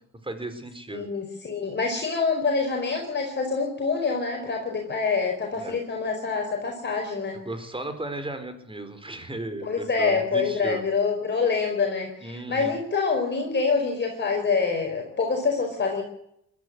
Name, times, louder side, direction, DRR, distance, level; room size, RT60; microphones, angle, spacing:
voice 1, 0.2-1.1 5.6-5.8 7.4-10.8 12.2-12.7, right 2 dB, 15° right, 10 dB, 4.6 m, -35 dB
voice 2, 0.9-7.4 9.6-16.0, left 4 dB, 35° left, 1 dB, 4.9 m, -26 dB
21.0 x 13.0 x 9.9 m, 0.77 s
cardioid pair, 90°, 30 cm